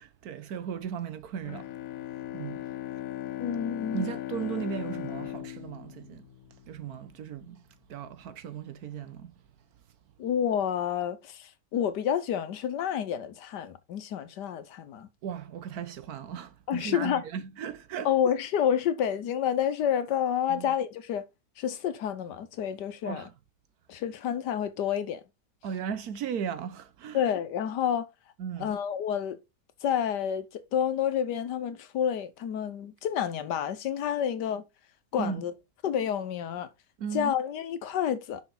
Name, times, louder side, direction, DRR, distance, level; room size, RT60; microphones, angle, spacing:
voice 1, 0.0-1.7 2.3-2.7 3.9-6.3 6.7-7.6 7.9-9.3 15.2-18.1 20.5-20.7 23.0-23.3 25.6-27.3 28.4-28.8 35.2-35.4 37.0-37.3, right 7 dB, 70° right, 1.3 m, -36 dB
Bowed string instrument, 1.4-7.0, left 13 dB, 65° left, 0.9 m, -38 dB
voice 2, 3.4-4.1 10.2-15.1 16.7-17.2 18.0-21.2 21.6-23.3 23.9-25.2 27.1-28.1 28.6-29.4 29.8-30.4 30.7-34.6 35.1-35.5 35.8-36.7 37.1-38.4, left 9 dB, 85° left, 1.5 m, -29 dB
6.4 x 5.8 x 3.9 m
omnidirectional pair, 1.8 m